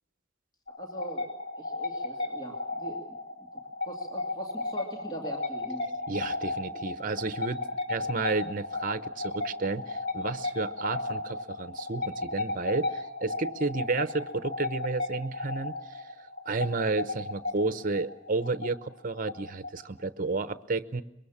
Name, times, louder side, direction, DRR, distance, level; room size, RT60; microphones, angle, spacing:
sound 1, 0.7-20.1, left 2 dB, 65° left, 4.5 m, -35 dB
voice 1, 0.8-1.3 1.6-3.0 3.8-5.9, right 1 dB, 20° left, 1 dB, 2.7 m, -41 dB
voice 2, 6.1-16.1 16.5-21.0, right 3 dB, 45° right, 12 dB, 0.9 m, -32 dB
24.5 x 22.5 x 7.3 m, 0.81 s
head